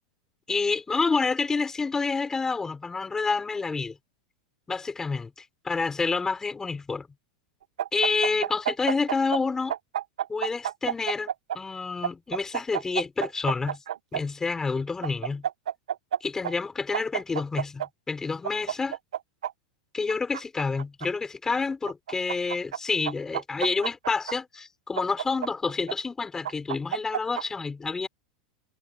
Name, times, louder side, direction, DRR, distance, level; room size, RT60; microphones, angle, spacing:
voice 1, 0.5-4.0 4.7-5.3 5.6-7.1 7.9-9.7 10.3-13.8 14.1-15.5 16.2-19.0 19.9-28.1, left 4 dB, 15° left, 5.5 m, -28 dB
sound 1, 7.8-9.4 9.7-11.6 12.0-14.2 15.0-16.2 16.4-16.5 16.9-17.9 18.4-19.5 20.1-21.1 21.9-22.8 23.0-24.3 25.0-25.9 26.4-27.4, right 10 dB, 90° right, 0.7 m, -29 dB
hypercardioid pair, 120°, 4 cm